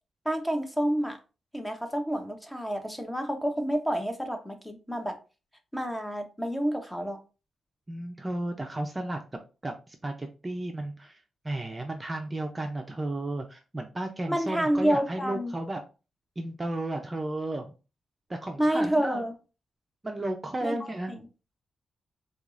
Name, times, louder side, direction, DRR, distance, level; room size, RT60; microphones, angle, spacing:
voice 1, 0.2-1.2 1.5-5.2 5.7-7.2 14.3-15.5 18.6-19.3 20.6-20.8 21.2-21.3, equal, 5° left, 0.8 m, -28 dB
voice 2, 7.9-9.2 9.6-11.2 11.4-15.8 16.4-17.7 18.3-19.2 20.0-21.1, right 1 dB, 25° right, 0.5 m, -33 dB
4.4 x 2.4 x 2.5 m
cardioid pair, 70°, 0 cm